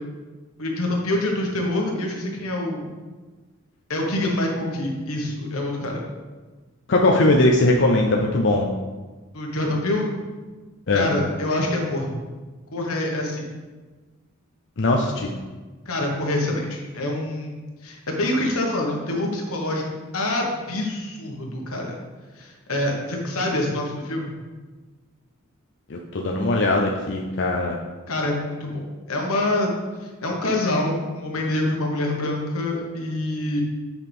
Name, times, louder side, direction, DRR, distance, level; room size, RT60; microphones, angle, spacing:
voice 1, 0.6-2.9 3.9-6.0 9.3-10.1 10.9-12.1 12.7-13.4 15.8-19.8 20.1-21.9 22.4-24.3 28.1-29.7 30.0-33.6, left 1 dB, 85° left, 0 dB, 1.5 m, -26 dB
voice 2, 6.9-8.7 10.9-11.1 14.8-15.3 25.9-27.8, left 2 dB, 55° left, 0 dB, 0.6 m, -20 dB
8.3 x 5.8 x 3.6 m, 1.3 s
head